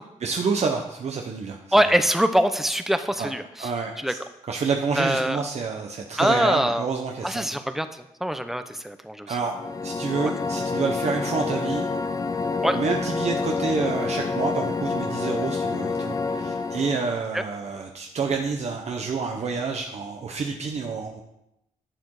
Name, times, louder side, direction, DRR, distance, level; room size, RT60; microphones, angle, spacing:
voice 1, 0.2-1.6 3.2-3.3 3.6-4.2 4.5-7.5 9.3-9.5 9.8-11.8 12.7-21.2, right 5 dB, 55° right, 2 dB, 1.2 m, -28 dB
voice 2, 1.7-3.7 4.0-4.1 5.0-5.4 6.2-6.9 7.2-9.4 12.6-12.8 17.3-17.4, equal, ahead, 9 dB, 0.9 m, -23 dB
sound 1, 9.5-17.2, left 4 dB, 25° left, 0.7 m, -28 dB
11.5 x 8.7 x 5.0 m, 0.83 s
wide cardioid pair, 125°, 13 cm